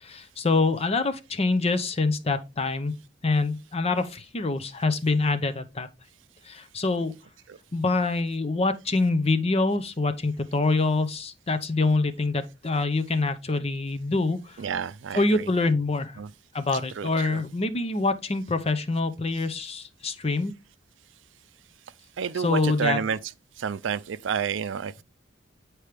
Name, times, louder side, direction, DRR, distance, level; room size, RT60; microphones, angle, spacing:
voice 1, 0.0-2.9 3.2-5.9 6.4-7.1 7.7-14.6 15.1-16.2 16.5-20.5 22.4-23.0, left 3 dB, 35° left, 0.7 m, -25 dB
voice 2, 14.6-15.4 16.2-16.3 17.0-17.4 22.2-23.2 23.6-25.0, right 7 dB, 75° right, 0.4 m, -30 dB
8.3 x 4.5 x 3.4 m
head